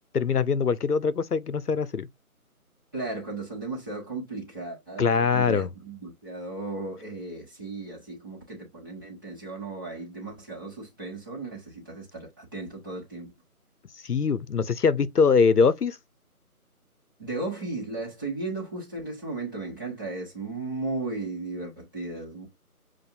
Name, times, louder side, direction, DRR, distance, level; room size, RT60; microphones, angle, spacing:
voice 1, 0.1-2.1 5.0-5.7 14.0-16.0, left 5 dB, 85° left, 0.7 m, -23 dB
voice 2, 2.9-13.3 17.2-22.5, right 3 dB, 15° right, 1.2 m, -35 dB
7.4 x 2.6 x 2.6 m
figure-of-eight pair, 160°, 45 cm